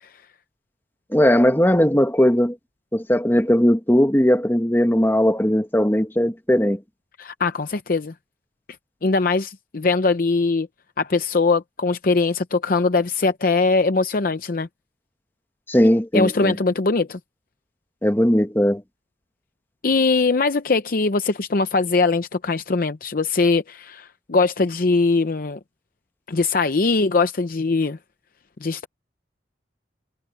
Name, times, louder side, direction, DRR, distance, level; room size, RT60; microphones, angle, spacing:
voice 1, 1.1-2.6 2.9-6.8 15.7-16.6 18.0-18.8, equal, 10° left, 1.3 m, -18 dB
voice 2, 7.2-8.1 9.0-10.7 11.0-14.7 16.1-17.2 19.8-25.6 26.3-28.0 28.6-28.9, left 3 dB, 50° left, 0.7 m, -21 dB
head